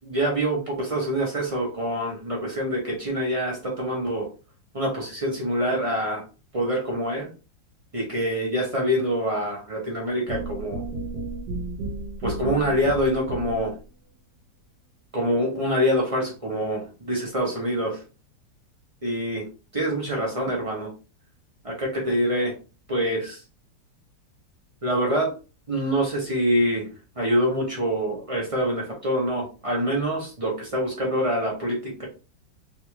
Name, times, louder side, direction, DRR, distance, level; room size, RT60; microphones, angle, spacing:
voice 1, 0.0-4.3 4.7-6.2 6.5-7.3 7.9-10.8 12.2-13.7 15.1-18.0 19.0-19.4 19.7-20.9 21.6-22.5 22.9-23.4 24.8-25.3 25.7-26.9 27.2-32.1, equal, 45° right, -2 dB, 0.4 m, -25 dB
sound 1, 10.3-13.8, right 2 dB, 70° right, 1.2 m, -33 dB
3.6 x 2.3 x 2.9 m, 0.33 s
omnidirectional pair, 2.0 m